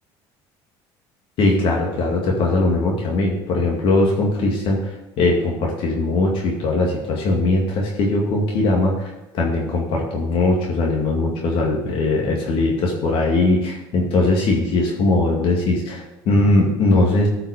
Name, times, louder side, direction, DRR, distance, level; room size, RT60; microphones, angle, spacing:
voice 1, 1.4-17.3, left 2 dB, 55° left, -1 dB, 2.2 m, -20 dB
13.0 x 5.8 x 5.0 m, 0.96 s
cardioid pair, 125°, 10 cm